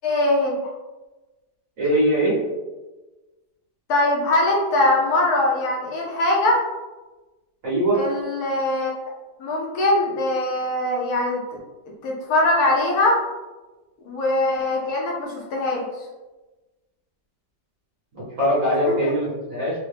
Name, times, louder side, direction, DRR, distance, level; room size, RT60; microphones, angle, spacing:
voice 1, 0.0-0.6 3.9-6.6 7.9-8.9 9.4-11.6 12.0-13.2 14.1-15.8 18.9-19.1, left 2 dB, 70° left, -2 dB, 0.9 m, -21 dB
voice 2, 1.8-2.3 7.6-8.0 18.1-19.7, equal, 50° right, -7 dB, 1.1 m, -21 dB
3.6 x 2.1 x 3.3 m, 1.2 s
omnidirectional pair, 2.2 m